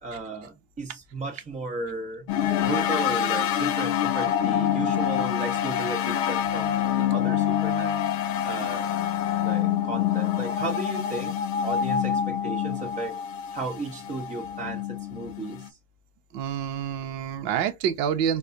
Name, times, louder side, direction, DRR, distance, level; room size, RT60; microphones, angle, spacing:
voice 1, 0.0-2.3 2.6-8.0 8.4-8.9 9.4-13.2 13.5-15.8, right 2 dB, 15° right, 1.0 m, -35 dB
sound 1, 2.3-15.7, left 9 dB, 50° left, 0.6 m, -26 dB
voice 2, 16.3-18.4, right 8 dB, 50° right, 0.9 m, -28 dB
4.1 x 2.3 x 2.5 m
hypercardioid pair, 135°, 48 cm